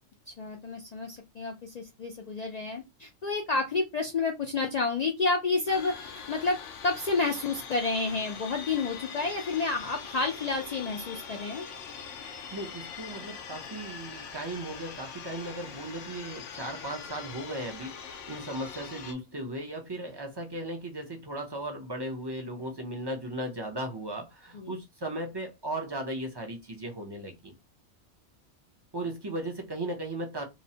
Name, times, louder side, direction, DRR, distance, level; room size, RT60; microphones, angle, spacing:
voice 1, 0.4-11.6 24.5-24.8, left 3 dB, 65° left, 0.4 m, -30 dB
sound 1, 5.7-19.1, left 6 dB, 90° left, 0.9 m, -43 dB
voice 2, 12.5-27.5 28.9-30.4, right 1 dB, 35° right, 0.4 m, -36 dB
2.9 x 2.0 x 2.6 m
omnidirectional pair, 1.2 m